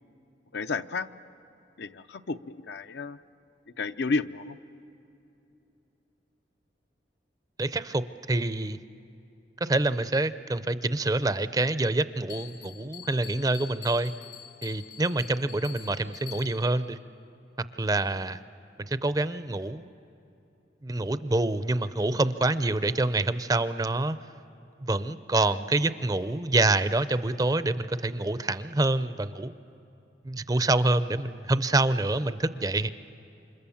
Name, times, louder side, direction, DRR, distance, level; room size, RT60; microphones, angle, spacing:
voice 1, 0.5-1.1 1.8-3.2 3.8-4.6, left 3 dB, 70° left, 10 dB, 0.6 m, -31 dB
voice 2, 7.6-8.8 9.6-14.1 14.6-17.0 17.6-18.4 18.8-19.9 20.8-24.2 24.8-29.5 30.2-32.9, right 2 dB, 20° right, 13 dB, 0.5 m, -26 dB
Bell, 12.3-16.8, left 11 dB, 85° left, 4.3 m, -46 dB
28.0 x 26.0 x 7.1 m, 2.8 s
head